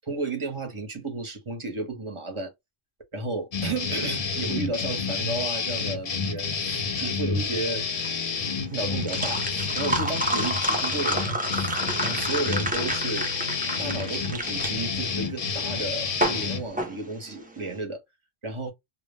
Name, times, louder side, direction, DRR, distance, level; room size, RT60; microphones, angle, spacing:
voice 1, 0.1-2.5 3.1-7.8 8.7-13.3 13.8-18.0 18.4-18.7, right 3 dB, 35° right, 0.7 m, -33 dB
sound 1, 3.5-16.6, left 5 dB, 45° left, 0.5 m, -29 dB
sound 2, 7.8-17.7, right 1 dB, 15° right, 0.3 m, -30 dB
2.1 x 2.0 x 3.2 m
omnidirectional pair, 1.1 m